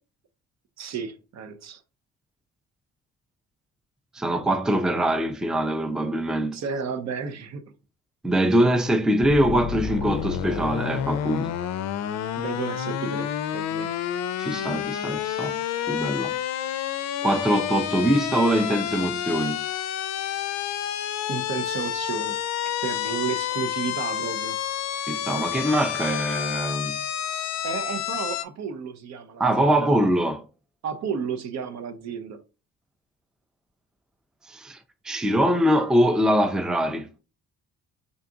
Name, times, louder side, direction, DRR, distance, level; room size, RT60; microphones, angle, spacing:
voice 1, 0.8-1.8 6.5-7.7 12.4-13.9 21.3-22.4 22.8-24.6 27.6-29.9 30.8-32.4, right 6 dB, 60° right, 0.7 m, -32 dB
voice 2, 4.1-6.6 8.2-11.5 14.4-15.6 15.9-16.4 17.2-19.6 25.1-27.0 29.4-30.4 34.5-34.8 35.0-37.1, right 1 dB, ahead, 0.4 m, -23 dB
sound 1, 9.2-28.4, left 10 dB, 60° left, 0.4 m, -29 dB
3.8 x 2.4 x 3.7 m
cardioid pair, 90°, 30 cm